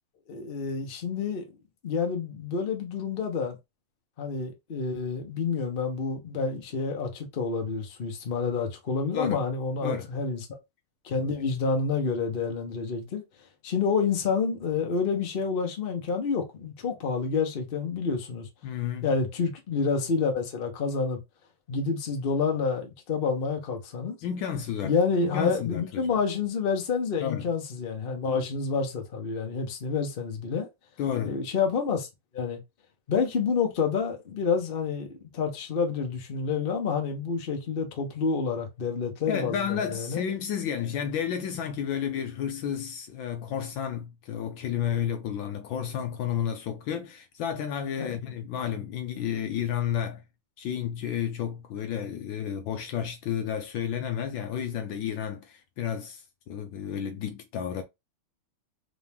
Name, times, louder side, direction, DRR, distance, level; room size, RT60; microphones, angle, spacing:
voice 1, 0.3-1.4 1.8-3.6 4.2-10.5 11.0-13.2 13.6-18.5 19.0-21.2 21.7-24.2 24.8-30.7 31.2-32.1 32.3-32.6 33.1-40.2 48.0-48.3, left 5 dB, 45° left, 0.7 m, -28 dB
voice 2, 18.6-19.1 24.2-24.9 25.2-26.1 27.2-27.5 31.0-31.3 39.3-50.2 50.6-57.8, left 8 dB, 75° left, 1.2 m, -31 dB
3.8 x 2.8 x 3.4 m
omnidirectional pair, 2.4 m